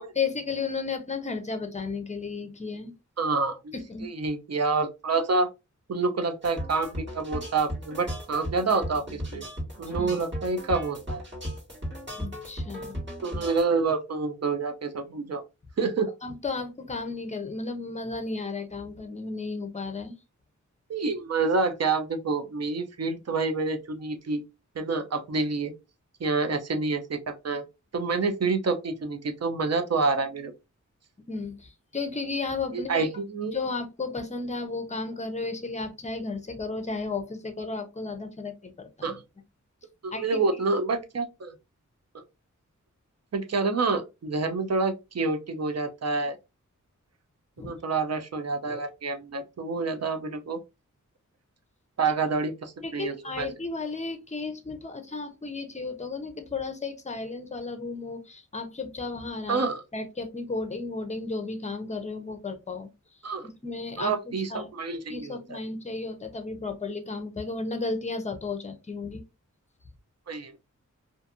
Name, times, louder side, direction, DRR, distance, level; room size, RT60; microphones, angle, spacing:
voice 1, 0.0-2.9 3.7-4.1 9.9-10.1 12.1-13.0 16.2-20.2 31.3-33.0 33.5-39.2 40.1-40.4 47.6-47.7 52.8-59.6 59.9-62.9 63.4-64.7 65.1-69.2, left 4 dB, 25° left, 8 dB, 0.6 m, -34 dB
voice 2, 3.2-3.7 4.0-5.5 5.9-9.4 9.8-11.2 13.2-15.4 15.8-16.1 20.9-24.4 24.8-25.7 26.2-27.6 27.9-30.5 32.7-33.5 39.0-39.2 40.0-41.5 42.1-42.2 43.3-46.4 47.6-50.6 52.0-53.5 59.5-59.8 63.2-63.5 64.0-65.6 70.3-70.6, right 4 dB, 55° right, 7 dB, 0.6 m, -28 dB
sound 1, 6.4-13.6, equal, 35° right, 1.6 m, -36 dB
2.5 x 2.5 x 2.4 m, 0.25 s
wide cardioid pair, 80°, 31 cm